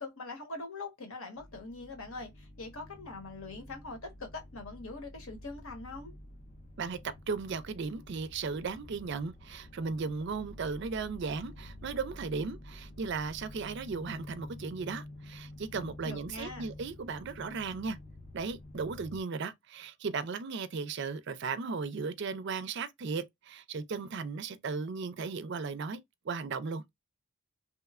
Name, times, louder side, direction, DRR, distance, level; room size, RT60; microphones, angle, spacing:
voice 1, 0.0-6.1 16.0-16.7, left 3 dB, 70° left, 1.0 m, -43 dB
sound 1, 1.4-19.2, left 1 dB, 30° left, 0.4 m, -49 dB
voice 2, 6.8-18.0 18.3-26.0 26.2-26.8, right 4 dB, 50° right, 0.4 m, -36 dB
3.0 x 2.0 x 2.3 m
head